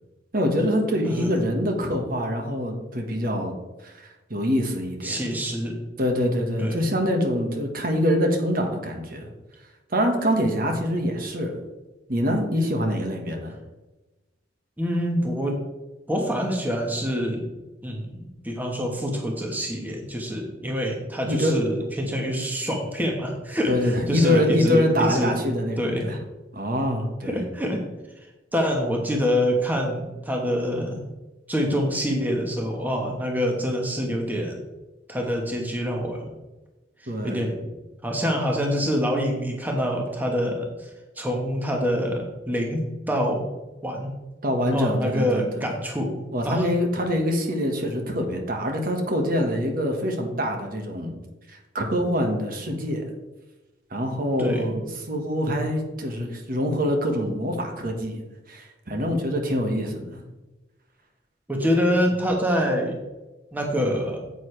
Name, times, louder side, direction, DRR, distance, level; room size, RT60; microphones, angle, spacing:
voice 1, 0.3-3.5 3.8-4.0 4.3-5.2 6.0-9.3 9.9-11.5 12.1-13.6 21.3-21.5 23.7-26.2 26.5-27.4 37.1-37.5 44.4-45.7 46.3-51.1 51.5-53.0 53.9-58.2 58.5-60.2, equal, 50° right, 3 dB, 1.5 m, -25 dB
voice 2, 1.0-1.4 5.0-5.8 6.6-6.9 14.8-15.6 16.1-17.5 17.8-25.4 25.8-26.1 27.3-27.8 28.5-31.0 31.5-34.6 35.1-36.3 37.0-37.6 38.0-40.9 41.2-43.5 43.8-44.1 44.7-46.7 54.4-54.7 61.5-63.0 63.5-64.2, equal, 10° right, 1 dB, 1.2 m, -26 dB
9.5 x 8.2 x 3.3 m, 1.1 s
head